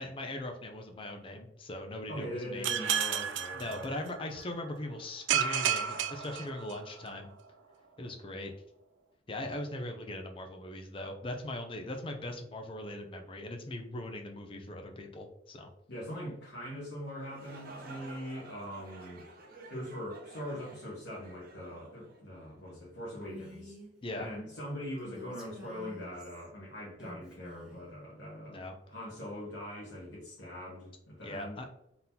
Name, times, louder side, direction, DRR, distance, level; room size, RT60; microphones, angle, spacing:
voice 1, 0.0-2.7 3.5-7.3 8.0-8.5 9.3-15.7 24.0-24.3 28.5-28.7 31.2-31.7, left 1 dB, 30° left, 4 dB, 0.5 m, -40 dB
voice 2, 2.1-3.9 15.9-19.2 19.7-23.8 24.2-28.6 28.9-31.6, equal, 75° left, -6 dB, 1.4 m, -42 dB
sound 1, 2.6-4.4 5.3-7.1, right 8 dB, 85° right, 0.4 m, -32 dB
sound 2, 17.1-22.8, right 2 dB, 55° right, 0.9 m, -51 dB
Female speech woman speaking, 23.2-23.9 25.0-26.5 27.0-27.9, left 1 dB, 5° right, 0.9 m, -49 dB
3.9 x 3.7 x 2.8 m, 0.81 s
head